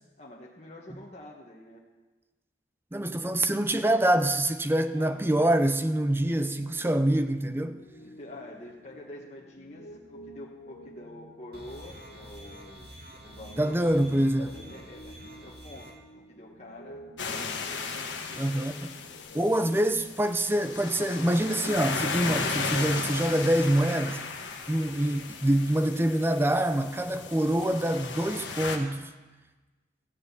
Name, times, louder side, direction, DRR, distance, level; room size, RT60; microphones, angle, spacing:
voice 1, 0.2-1.8 4.9-5.5 6.2-6.4 8.0-12.9 13.2-13.8 14.4-17.1 17.9-18.5 19.6-19.8, left 1 dB, 35° left, 1.4 m, -47 dB
voice 2, 2.9-7.8 13.6-14.5 18.3-18.9 19.3-24.2 24.7-29.1, right 1 dB, 10° right, 0.5 m, -25 dB
Piano, 6.3-20.0, equal, 65° left, 1.3 m, -51 dB
sound 1, 11.5-15.9, equal, 60° right, 2.6 m, -47 dB
sound 2, 17.2-28.8, left 4 dB, 90° left, 1.5 m, -35 dB
15.0 x 6.6 x 8.3 m
head